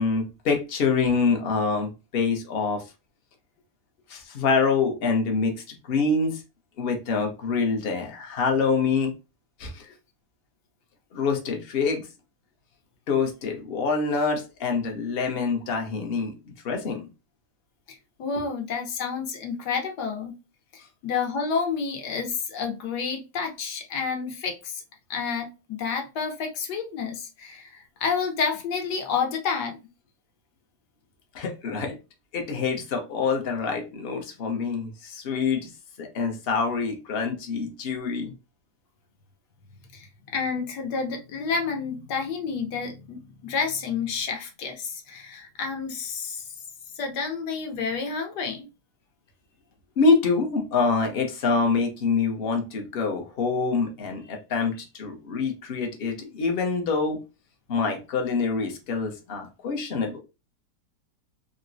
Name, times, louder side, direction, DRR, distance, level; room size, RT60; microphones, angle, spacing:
voice 1, 0.0-2.9 4.1-6.4 6.8-9.1 9.6-9.9 11.1-12.1 13.1-16.3 16.6-17.1 31.3-32.0 32.3-35.7 36.0-38.3 50.0-57.2 57.7-60.2, left 4 dB, 55° left, 3 dB, 0.7 m, -26 dB
voice 2, 17.9-20.3 20.7-24.8 25.1-29.8 39.9-46.5 47.0-48.7, left 5 dB, 75° left, 3 dB, 1.3 m, -30 dB
3.8 x 2.1 x 2.5 m, 0.28 s
omnidirectional pair, 1.8 m